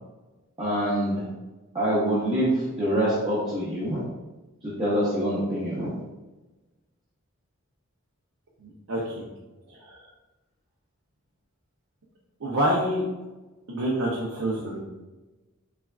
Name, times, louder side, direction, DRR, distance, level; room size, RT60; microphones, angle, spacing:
voice 1, 0.6-1.2 1.7-2.5 2.8-4.0 4.8-5.9, equal, 20° right, -10 dB, 0.6 m, -25 dB
voice 2, 8.6-9.2 9.7-10.0 12.4-13.0 13.7-14.8, equal, 70° right, -5 dB, 0.5 m, -27 dB
3.3 x 2.3 x 2.3 m, 1.1 s
head